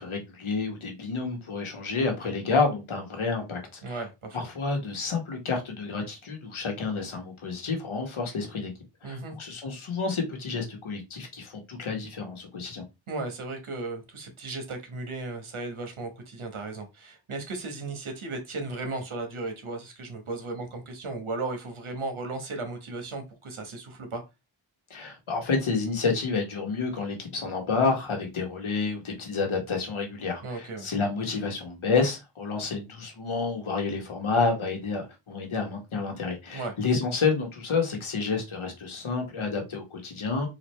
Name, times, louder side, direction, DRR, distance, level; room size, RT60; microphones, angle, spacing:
voice 1, 0.0-4.0 4.3-8.7 9.0-12.8 24.9-40.5, left 4 dB, 75° left, 1.3 m, -29 dB
voice 2, 3.8-4.4 9.0-9.3 13.1-24.2 30.4-30.9 36.5-36.7, right 3 dB, 75° right, 1.2 m, -35 dB
4.1 x 2.5 x 3.2 m
wide cardioid pair, 100°, 49 cm